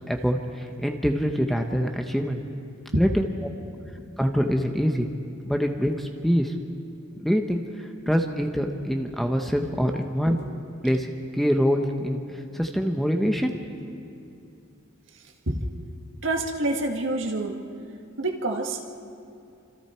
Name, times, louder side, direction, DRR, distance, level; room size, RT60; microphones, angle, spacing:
voice 1, 0.1-2.4 3.0-3.3 4.2-5.1 5.5-6.5 7.2-10.4 10.8-12.2 12.5-13.6, equal, ahead, 3 dB, 1.0 m, -25 dB
voice 2, 16.2-17.6 18.2-18.9, right 2 dB, 60° right, 3 dB, 1.9 m, -27 dB
27.5 x 26.5 x 4.5 m, 2.6 s
head